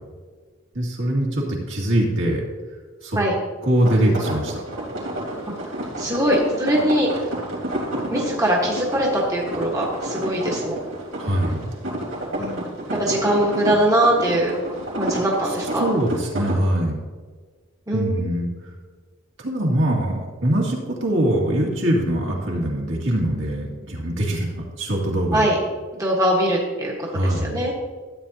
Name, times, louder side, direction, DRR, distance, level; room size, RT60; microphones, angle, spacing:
voice 1, 0.7-2.5 3.0-3.2 3.6-4.6 11.1-11.7 15.4-17.0 17.9-18.7 19.4-25.5 27.0-27.6, right 1 dB, 60° right, -2 dB, 2.2 m, -23 dB
sound 1, 3.8-16.6, right 1 dB, 85° right, 3.3 m, -30 dB
voice 2, 6.0-7.1 8.1-10.8 12.4-12.6 13.0-14.5 15.0-15.9 17.9-18.2 25.3-25.6 25.9-27.7, right 1 dB, 15° right, -4 dB, 1.4 m, -21 dB
13.5 x 8.8 x 2.8 m, 1.5 s
head